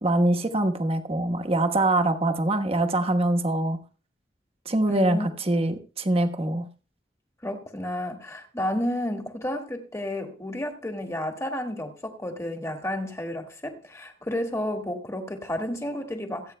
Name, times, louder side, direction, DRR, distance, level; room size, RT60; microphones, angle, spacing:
voice 1, 0.0-3.8 4.6-6.7, right 1 dB, 35° right, 5 dB, 1.1 m, -24 dB
voice 2, 4.9-5.3 7.4-16.5, left 1 dB, 15° left, 3 dB, 1.7 m, -31 dB
26.0 x 8.9 x 2.2 m, 0.37 s
head